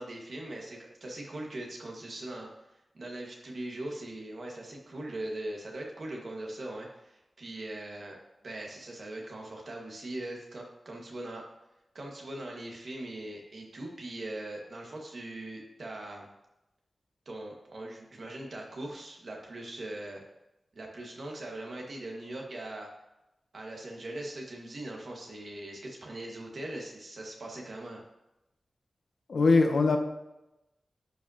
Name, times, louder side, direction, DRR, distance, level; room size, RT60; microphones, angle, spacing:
voice 1, 0.0-2.5 2.9-8.2 8.4-11.4 11.9-16.3 17.3-20.2 20.7-22.9 23.5-28.0, right 1 dB, 65° right, 0 dB, 1.7 m, -40 dB
voice 2, 29.3-30.0, left 3 dB, 75° left, 4 dB, 0.9 m, -22 dB
10.5 x 5.2 x 2.9 m, 0.94 s
wide cardioid pair, 100°, 0 cm